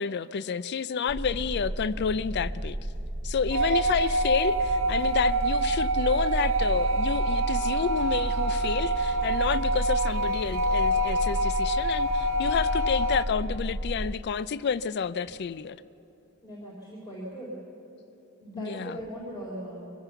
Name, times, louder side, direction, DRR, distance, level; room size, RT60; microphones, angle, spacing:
voice 1, 0.0-2.8 3.2-15.8 18.5-19.0, left 6 dB, 55° left, 0.4 m, -30 dB
sound 1, 1.1-14.1, right 1 dB, 25° right, 0.7 m, -32 dB
sound 2, 3.5-13.3, right 1 dB, 90° right, 0.9 m, -27 dB
voice 2, 16.4-17.6 18.4-19.9, equal, 20° left, 3.7 m, -39 dB
23.5 x 16.5 x 7.0 m
head